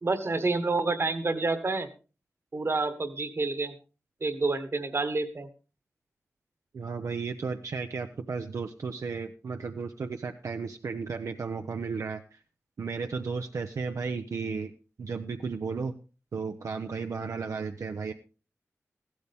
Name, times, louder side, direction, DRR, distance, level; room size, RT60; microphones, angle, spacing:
voice 1, 0.0-1.9 2.5-3.8 4.2-5.5, right 3 dB, 50° right, 11 dB, 1.4 m, -28 dB
voice 2, 6.7-12.4 12.8-14.7 15.0-16.0 16.3-18.1, right 5 dB, 80° right, 5 dB, 0.7 m, -34 dB
14.5 x 12.5 x 3.5 m, 0.33 s
wide cardioid pair, 65°, 5 cm